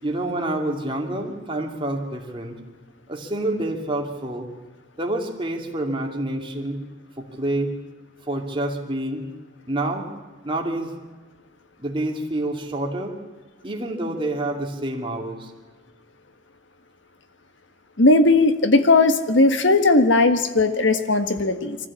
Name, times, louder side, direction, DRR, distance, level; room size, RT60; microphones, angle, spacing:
voice 1, 0.0-2.6 3.1-4.5 5.0-6.8 7.2-7.7 8.3-9.3 9.7-10.1 10.4-10.9 11.8-13.1 13.6-15.5, right 1 dB, 30° right, 1 dB, 2.7 m, -27 dB
voice 2, 18.0-21.8, left 2 dB, 90° left, 9 dB, 1.6 m, -17 dB
23.5 x 15.0 x 8.5 m, 1.4 s
head